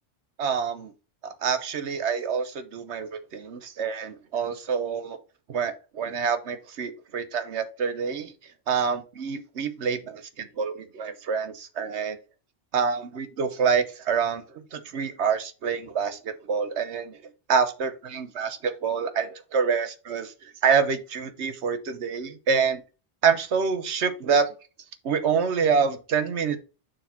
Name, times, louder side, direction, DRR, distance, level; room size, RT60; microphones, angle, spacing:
voice 1, 0.4-0.9 1.2-5.2 5.5-8.3 8.7-12.2 12.7-17.2 17.5-22.8 23.2-24.5 25.0-26.6, right 6 dB, 80° right, 11 dB, 1.2 m, -27 dB
6.9 x 3.2 x 5.6 m, 0.33 s
omnidirectional pair, 1.1 m